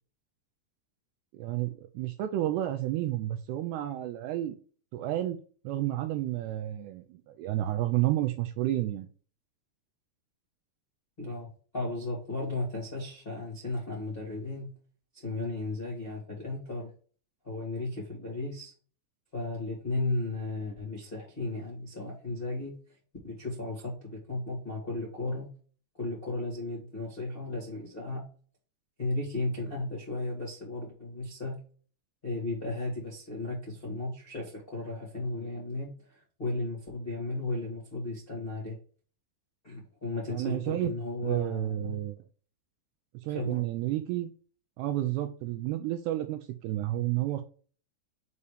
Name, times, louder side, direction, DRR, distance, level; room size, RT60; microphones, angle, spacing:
voice 1, 1.3-4.6 4.9-9.1 40.3-40.9 41.2-42.2 43.3-44.3 44.8-47.4, right 14 dB, 80° right, 7 dB, 2.4 m, -31 dB
voice 2, 11.2-14.7 15.2-16.9 17.4-18.7 19.3-22.8 23.2-25.5 25.9-28.2 29.0-31.6 32.2-38.8 39.6-42.0 43.3-43.6, left 2 dB, 35° left, -5 dB, 0.9 m, -35 dB
6.9 x 2.8 x 4.9 m, 0.40 s
omnidirectional pair, 5.0 m